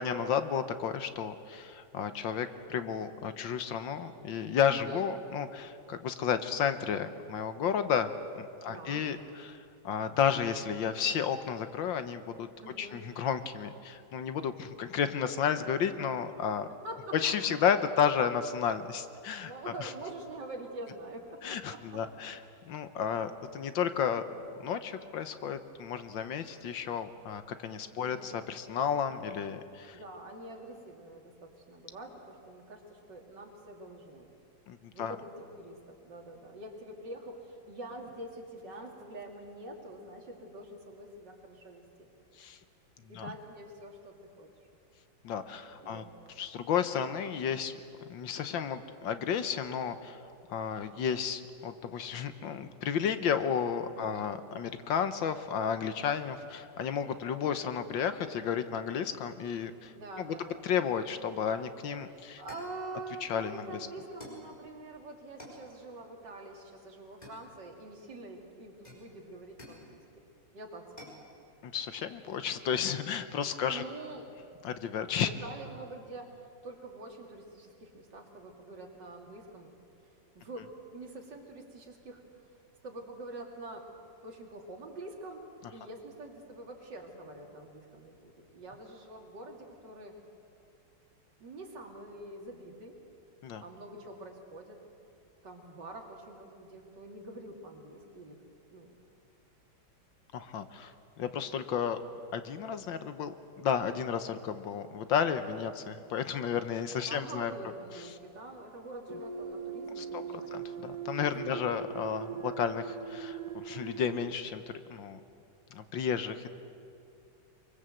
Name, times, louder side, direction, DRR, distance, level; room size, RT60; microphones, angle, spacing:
voice 1, 0.0-8.1 8.4-12.5 12.8-16.7 17.1-19.5 19.8-19.9 21.4-22.4 22.7-24.2 24.6-30.0 34.7-35.2 42.4-42.6 43.1-43.3 45.2-46.0 46.4-47.8 48.1-50.2 50.5-59.9 60.2-60.3 60.6-62.4 63.2-63.6 71.6-73.8 74.6-75.3 93.4-93.6 100.3-102.0 102.3-107.5 107.9-108.0 110.0-110.2 110.5-114.6 114.9-115.2 115.7-116.5, left 7 dB, 75° left, 10 dB, 1.7 m, -32 dB
voice 2, 4.7-5.1 8.6-9.0 12.6-13.0 16.7-17.4 19.4-22.0 22.6-22.7 28.0-28.3 29.9-34.3 34.9-35.3 35.6-42.1 43.1-44.5 45.8-46.1 53.9-54.3 59.9-60.6 62.4-70.0 70.5-71.2 73.7-74.3 75.2-79.7 80.3-82.2 82.8-83.8 84.2-90.1 91.4-92.9 93.6-94.8 95.4-98.4 98.7-98.9 107.1-110.7 111.3-111.8, right 2 dB, 60° right, 1 dB, 3.3 m, -45 dB
sound 1, 62.5-62.8 64.2-64.5 65.4-65.7 67.2-67.9 68.8-69.9 71.0-71.3, left 1 dB, 20° left, 4.9 m, -50 dB
sound 2, 109.1-114.3, right 6 dB, 45° right, 0.6 m, -40 dB
24.0 x 23.5 x 7.8 m, 2.5 s
omnidirectional pair, 2.1 m